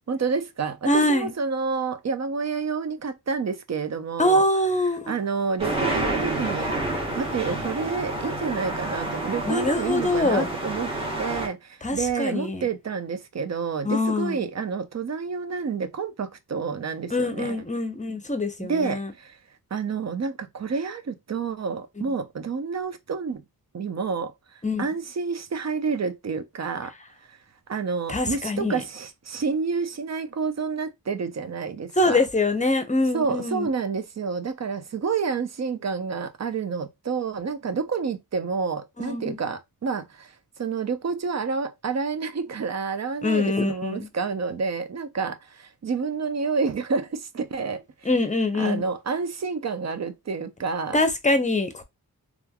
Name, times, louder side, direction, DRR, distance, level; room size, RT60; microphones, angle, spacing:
voice 1, 0.1-4.4 5.1-6.8 7.2-10.9 11.2-17.6 18.6-19.4 19.7-23.4 23.7-26.9 27.2-27.4 27.7-32.2 33.1-40.3 40.6-47.8 48.6-51.0, right 5 dB, 45° right, 0.5 m, -29 dB
voice 2, 0.9-1.3 4.2-5.1 9.5-10.5 11.8-12.7 13.8-14.4 17.1-19.1 24.6-24.9 28.1-28.8 32.0-33.7 39.0-39.4 43.2-44.1 48.0-48.8 50.9-51.8, left 2 dB, 20° left, 0.6 m, -24 dB
sound 1, 5.6-11.5, right 2 dB, 15° right, 1.2 m, -29 dB
3.1 x 2.4 x 2.2 m
wide cardioid pair, 60°, 37 cm